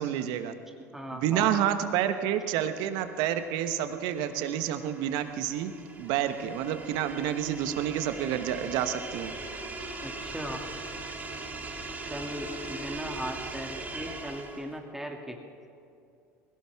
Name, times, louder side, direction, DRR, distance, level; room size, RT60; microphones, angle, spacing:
voice 1, 0.0-0.6 1.1-5.7 6.0-9.3, right 10 dB, 65° right, 10 dB, 1.1 m, -29 dB
voice 2, 0.7-1.7 10.0-10.7 12.1-15.4, equal, 5° right, 1 dB, 2.5 m, -38 dB
sound 1, 2.9-14.8, right 2 dB, 20° right, 2.7 m, -40 dB
21.0 x 17.0 x 3.6 m, 2.5 s
hypercardioid pair, 75°, 8 cm